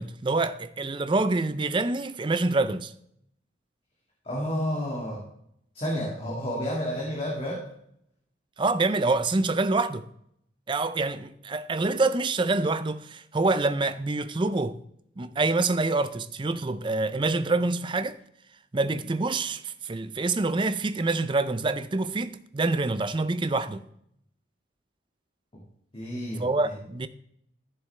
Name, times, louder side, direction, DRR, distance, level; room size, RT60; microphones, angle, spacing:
voice 1, 0.0-2.9 8.6-10.1 10.7-14.8 15.2-18.2 18.7-23.8 26.4-27.1, right 3 dB, 25° right, 0.4 m, -26 dB
voice 2, 4.2-5.2 5.7-7.6 25.9-26.5, equal, 30° left, 1.9 m, -30 dB
14.0 x 6.8 x 3.3 m
head